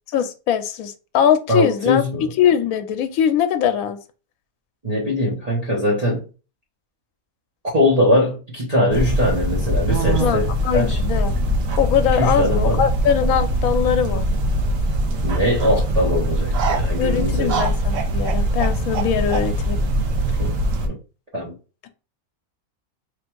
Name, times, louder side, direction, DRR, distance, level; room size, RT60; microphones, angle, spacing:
voice 1, 0.1-2.0 2.4-4.0 10.2-11.4 11.8-14.3 17.0-19.8, left 8 dB, 80° left, 1.0 m, -21 dB
voice 2, 1.5-2.3 4.8-6.3 7.7-11.0 12.1-12.8 15.2-17.7 20.4-20.5 20.8-21.0 21.3-21.5, left 1 dB, 30° right, 1.1 m, -21 dB
sound 1, 8.9-20.9, right 1 dB, 70° right, 1.2 m, -22 dB
3.3 x 2.5 x 4.5 m
omnidirectional pair, 1.5 m